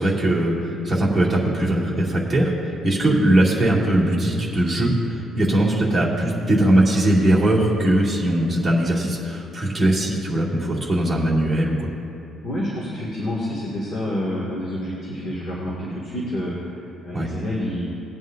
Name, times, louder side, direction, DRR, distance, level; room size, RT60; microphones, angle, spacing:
voice 1, 0.0-11.9 17.1-17.3, right 1 dB, 5° right, -8 dB, 2.5 m, -20 dB
voice 2, 12.4-17.9, left 1 dB, 35° left, -6 dB, 2.0 m, -28 dB
19.0 x 9.2 x 2.6 m, 2.7 s
cardioid pair, 165°, 0 cm